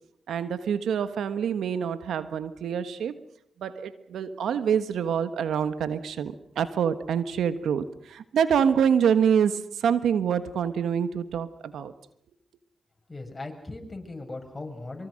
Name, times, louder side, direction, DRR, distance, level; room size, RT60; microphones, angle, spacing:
voice 1, 0.3-3.2 3.6-11.9, right 7 dB, 85° right, 12 dB, 1.3 m, -26 dB
voice 2, 13.1-15.1, left 2 dB, 30° left, 4 dB, 6.6 m, -38 dB
24.5 x 23.5 x 6.5 m, 0.72 s
supercardioid pair, 40°, 0 cm